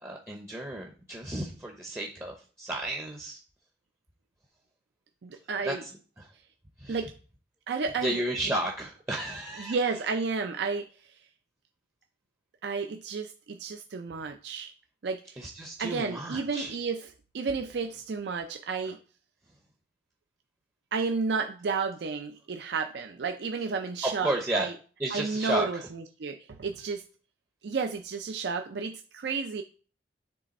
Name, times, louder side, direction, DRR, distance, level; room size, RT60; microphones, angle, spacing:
voice 1, 0.0-3.4 5.6-5.9 6.2-6.3 6.8-7.0 8.0-9.8 15.4-16.8 24.0-24.7 25.0-25.9, right 1 dB, 15° right, 1 dB, 0.6 m, -33 dB
voice 2, 5.2-5.9 6.9-7.1 7.7-8.3 9.6-10.9 12.6-14.7 15.0-15.2 15.8-19.0 20.9-24.7 25.1-25.9 26.2-27.0 27.6-29.6, right 4 dB, 65° right, 5 dB, 0.4 m, -32 dB
7.5 x 3.3 x 4.1 m, 0.40 s
head